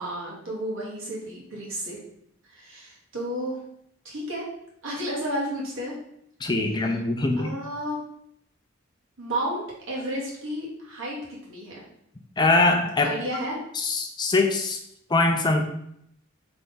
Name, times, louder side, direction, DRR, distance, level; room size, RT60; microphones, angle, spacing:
voice 1, 0.0-2.0 2.5-3.6 4.0-4.4 4.8-5.9 7.4-8.0 9.2-11.8 13.0-13.6, equal, 70° right, -4 dB, 1.6 m, -32 dB
voice 2, 6.4-7.5 12.4-13.2 13.7-14.8 15.1-15.7, left 2 dB, 20° left, 3 dB, 0.4 m, -22 dB
3.9 x 3.4 x 3.9 m, 0.73 s
head